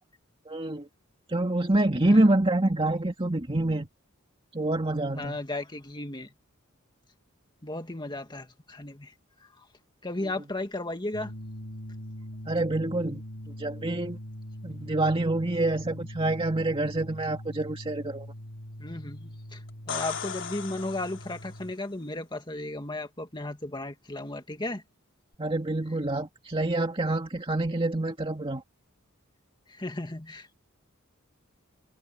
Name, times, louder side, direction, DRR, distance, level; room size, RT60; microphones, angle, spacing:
voice 1, 0.5-0.9 1.3-3.9 4.5-5.4 12.5-13.2 13.6-14.2 14.6-18.3 25.4-28.6, right 2 dB, 25° right, 2.2 m, -26 dB
voice 2, 5.2-6.3 7.6-9.1 9.4-9.5 10.0-11.3 18.8-24.8 29.7-30.5, left 2 dB, 20° left, 2.2 m, -35 dB
sound 1, 11.1-21.7, equal, 80° left, 6.0 m, -42 dB
sound 2, 19.7-21.6 25.3-25.4, left 7 dB, 60° left, 3.1 m, -37 dB
head